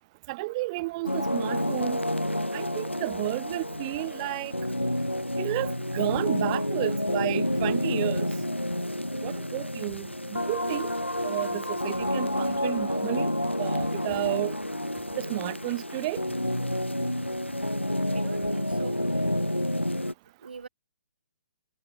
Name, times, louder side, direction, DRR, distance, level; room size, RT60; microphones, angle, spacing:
voice 1, 0.3-2.0 2.5-4.5 5.4-8.3 9.2-10.9 11.2-13.3 13.6-14.6 15.2-16.2, right 22 dB, 30° right, 4.3 m, -32 dB
sound 1, 1.1-20.1, left 1 dB, 90° left, 2.2 m, -29 dB
voice 2, 17.4-19.0 20.4-20.7, right 5 dB, 60° right, 3.1 m, -43 dB
figure-of-eight pair, 130°, 6 cm